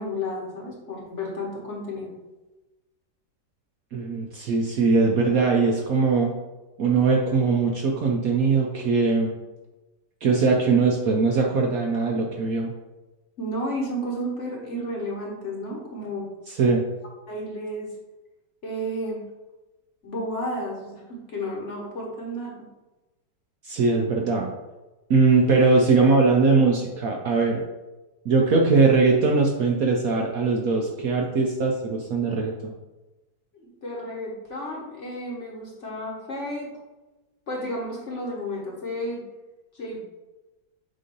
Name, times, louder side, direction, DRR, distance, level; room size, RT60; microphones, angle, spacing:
voice 1, 0.0-2.1 13.4-16.3 17.3-17.9 18.6-19.2 20.0-22.5 33.5-36.7 37.5-39.2 39.7-40.0, equal, 45° left, -2 dB, 1.3 m, -32 dB
voice 2, 3.9-6.3 6.8-9.3 10.2-12.7 16.5-16.8 23.6-24.5 25.1-27.6 28.2-32.7, right 4 dB, 65° right, 0 dB, 0.9 m, -21 dB
7.4 x 2.7 x 5.3 m, 1.1 s
omnidirectional pair, 2.0 m